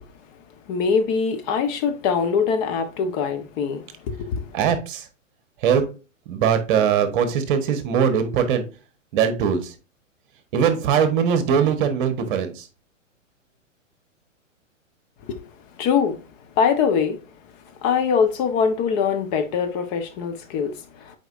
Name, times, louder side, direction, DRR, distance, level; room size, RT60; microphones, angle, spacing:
voice 1, 0.7-3.8 4.2-4.4 15.3-15.4 15.8-16.2 16.6-17.1 17.8-20.7, left 6 dB, 30° left, 1.1 m, -22 dB
voice 2, 4.5-5.1 5.6-5.8 6.3-8.6 9.1-9.7 10.5-12.7, right 7 dB, 40° right, 1.3 m, -21 dB
7.9 x 4.6 x 2.6 m
hypercardioid pair, 120°, 39 cm